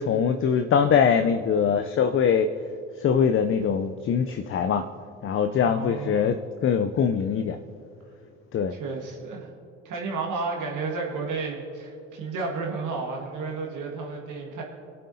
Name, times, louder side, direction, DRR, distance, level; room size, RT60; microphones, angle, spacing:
voice 1, 0.0-2.5 3.0-4.8 5.2-7.6 8.5-8.8, left 7 dB, 35° left, 8 dB, 0.6 m, -23 dB
voice 2, 5.6-6.2 8.7-9.5 9.9-14.6, right 4 dB, 55° right, -1 dB, 1.8 m, -32 dB
22.5 x 8.6 x 2.8 m, 2.5 s
hypercardioid pair, 55°, 36 cm